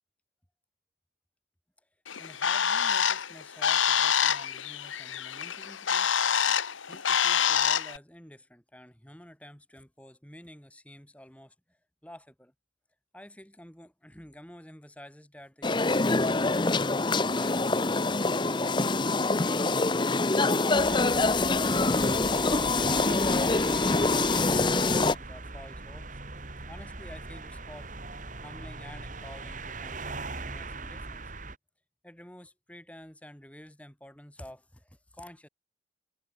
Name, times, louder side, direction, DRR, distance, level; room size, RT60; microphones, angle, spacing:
Bird, 2.1-8.0, left 8 dB, 85° left, 1.2 m, -26 dB
voice 1, 2.2-6.2 6.9-12.5 13.1-17.7 26.7-27.9 28.4-31.2 32.0-35.5, equal, 5° left, 5.9 m, -50 dB
sound 1, 15.6-25.2, left 3 dB, 25° left, 0.8 m, -25 dB
sound 2, 20.7-31.6, right 3 dB, 40° right, 2.6 m, -40 dB
head